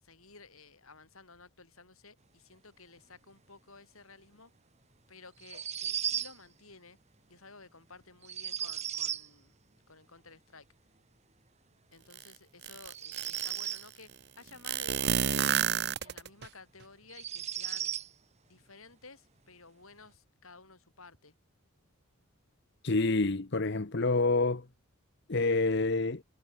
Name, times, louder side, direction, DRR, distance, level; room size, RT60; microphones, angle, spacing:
voice 1, 0.0-4.5 5.1-7.0 7.3-9.5 9.9-10.7 11.9-15.6 16.0-17.9 18.5-21.3, left 4 dB, 75° left, 7.0 m, -54 dB
sound 1, 5.4-6.4 8.2-9.3 12.8-13.9 16.1-16.2 17.1-18.1, right 10 dB, 30° right, 1.3 m, -35 dB
sound 2, 12.1-12.2 12.6-13.8 14.6-16.5, right 8 dB, 50° right, 0.9 m, -30 dB
voice 2, 22.8-24.7 25.3-26.2, left 3 dB, 50° left, 0.9 m, -27 dB
head